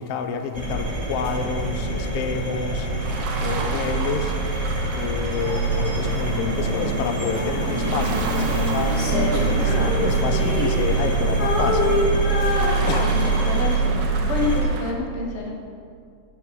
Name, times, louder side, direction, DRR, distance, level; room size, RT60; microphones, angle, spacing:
voice 1, 0.0-2.9 3.4-4.3 4.9-12.0 12.9-13.2, left 6 dB, 80° left, 7 dB, 1.3 m, -29 dB
sound 1, 0.5-14.6, right 3 dB, 15° right, 1.1 m, -24 dB
sound 2, 3.0-14.9, right 4 dB, 75° right, 2.4 m, -36 dB
Female singing, 8.9-11.1 11.4-13.4 14.0-14.2, left 2 dB, 35° left, 1.8 m, -26 dB
voice 2, 13.0-15.5, left 4 dB, 60° left, -1 dB, 0.7 m, -29 dB
8.3 x 7.2 x 8.0 m, 2.3 s
omnidirectional pair, 3.6 m